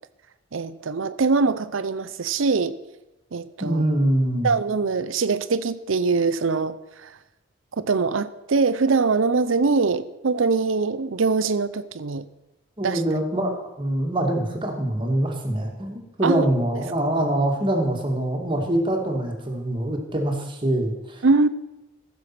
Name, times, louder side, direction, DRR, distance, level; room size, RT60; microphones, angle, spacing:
voice 1, 0.5-2.8 3.3-3.8 4.4-7.1 7.8-12.3 12.8-13.0 16.2-16.4 21.2-21.5, right 4 dB, 85° right, 14 dB, 0.6 m, -23 dB
voice 2, 3.6-4.5 12.8-21.2, right 1 dB, 25° right, 1 dB, 2.1 m, -24 dB
15.0 x 6.9 x 6.0 m, 0.98 s
head